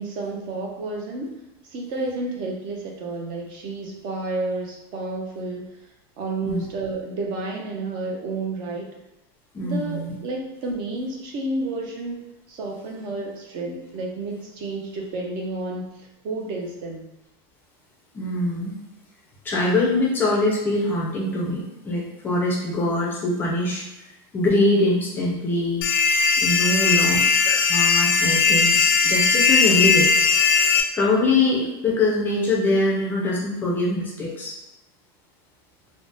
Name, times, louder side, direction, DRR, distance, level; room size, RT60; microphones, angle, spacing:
voice 1, 0.0-5.7 6.2-8.9 9.6-12.2 12.5-17.1 26.7-27.2, right 2 dB, 40° right, 0 dB, 0.5 m, -31 dB
voice 2, 9.5-10.1 18.1-18.8 19.4-23.8 24.3-25.9 26.4-27.2 27.5-30.1 30.9-34.6, left 2 dB, 15° left, -3 dB, 0.4 m, -23 dB
sound 1, 25.8-30.8, left 5 dB, 75° left, 0.4 m, -18 dB
3.4 x 2.0 x 2.6 m, 0.89 s
supercardioid pair, 170°, 13 cm